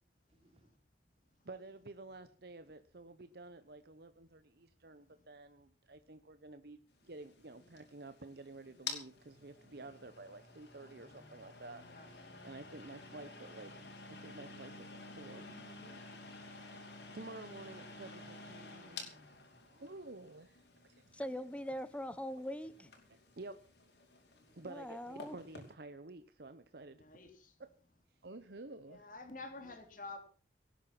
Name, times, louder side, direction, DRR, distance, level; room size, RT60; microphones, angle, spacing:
voice 1, 0.3-1.3 2.0-2.2 7.0-7.2 11.8-12.2 15.2-17.0 18.2-18.4 19.5-20.0 21.0-21.5 24.3-24.7 29.5-29.9, equal, 35° right, 4 dB, 4.0 m, -66 dB
voice 2, 1.4-6.8 7.1-11.8 12.1-13.8 14.1-15.5 17.1-19.1 23.4-23.6 24.5-27.0 27.6-27.7, right 2 dB, 60° right, 11 dB, 0.9 m, -51 dB
sound 1, 7.0-25.7, left 4 dB, 70° left, 5.1 m, -51 dB
voice 3, 11.9-12.2 27.0-27.5 28.9-30.2, left 3 dB, 50° left, 6 dB, 3.6 m, -49 dB
voice 4, 19.8-20.9 23.1-23.2 28.2-29.1, right 2 dB, 75° right, 10 dB, 1.1 m, -50 dB
voice 5, 21.1-22.9 24.7-25.4, equal, 5° left, 14 dB, 1.0 m, -42 dB
18.5 x 10.5 x 6.0 m, 0.41 s
head